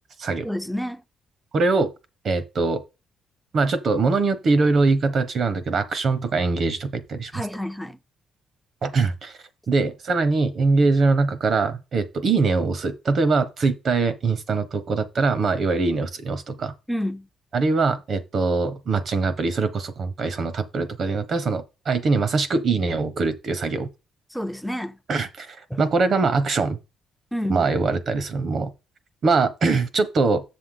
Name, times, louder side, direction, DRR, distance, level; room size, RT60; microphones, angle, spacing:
voice 1, 0.4-1.0 7.3-8.0 16.9-17.3 24.3-25.0 25.7-25.8 27.3-27.7, equal, ahead, 0.7 m, -29 dB
voice 2, 1.5-1.9 2.2-2.8 3.5-7.4 8.8-9.3 9.7-16.7 17.5-23.9 25.1-26.8 27.5-28.7 29.2-30.4, right 4 dB, 55° right, 1.2 m, -22 dB
7.1 x 6.6 x 3.8 m
cardioid pair, 90°, 0 cm